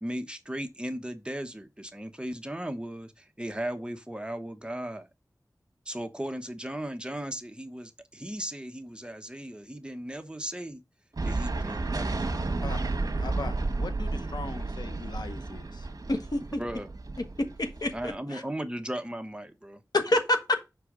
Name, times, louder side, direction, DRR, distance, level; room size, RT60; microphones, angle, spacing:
voice 1, 0.0-5.1 5.9-10.8 11.2-12.2 16.6-16.9 17.9-19.8, right 1 dB, 15° right, 1.1 m, -36 dB
sound 1, 11.2-18.1, right 3 dB, 60° right, 1.2 m, -32 dB
voice 2, 12.6-12.9 13.2-15.9, left 4 dB, 90° left, 0.6 m, -40 dB
voice 3, 16.1-16.6 17.4-18.4 19.9-20.7, left 1 dB, 65° left, 1.4 m, -27 dB
6.3 x 4.6 x 4.9 m
wide cardioid pair, 55°, 7 cm